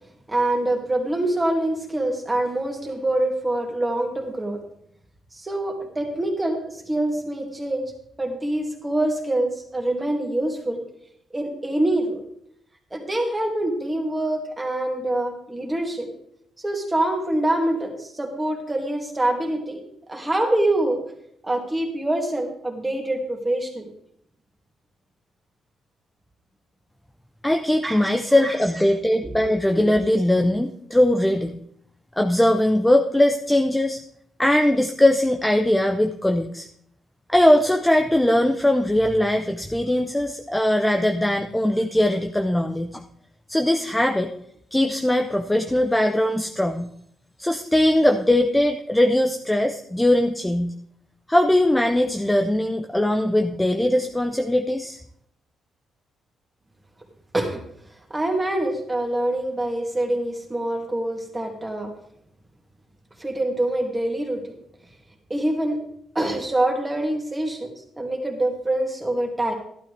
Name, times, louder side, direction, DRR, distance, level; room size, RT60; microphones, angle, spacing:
voice 1, 0.3-4.6 5.3-7.8 8.2-10.8 11.3-12.2 12.9-16.1 16.6-19.8 20.1-21.0 21.4-23.9 27.8-28.6 29.2-29.3 29.7-29.8 57.3-57.6 58.1-61.9 63.2-64.5 65.3-65.8 66.1-67.7 68.0-69.5, right 1 dB, 15° right, 1 dB, 2.3 m, -25 dB
voice 2, 27.4-31.6 32.2-34.0 34.4-36.7 37.3-43.0 43.5-44.3 44.7-46.9 47.4-50.7 51.3-55.0, left 1 dB, 5° left, 5 dB, 0.6 m, -20 dB
12.0 x 12.0 x 3.4 m, 0.69 s
cardioid pair, 110°, 0 cm